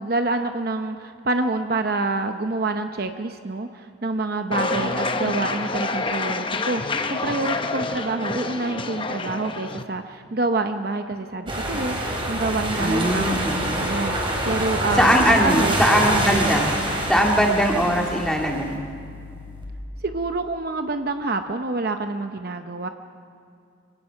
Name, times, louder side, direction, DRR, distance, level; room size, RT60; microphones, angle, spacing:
voice 1, 0.0-13.5 13.7-15.8 16.2-16.4 20.0-22.9, right 2 dB, 50° right, 7 dB, 0.7 m, -27 dB
sound 1, 4.5-9.8, left 3 dB, 25° left, 0.7 m, -27 dB
sound 2, 11.5-19.6, right 1 dB, 25° right, 3.5 m, -26 dB
voice 2, 12.8-13.8 15.0-16.7 17.1-18.8, equal, 5° left, 0 dB, 2.1 m, -20 dB
25.0 x 18.5 x 5.8 m, 2.4 s
head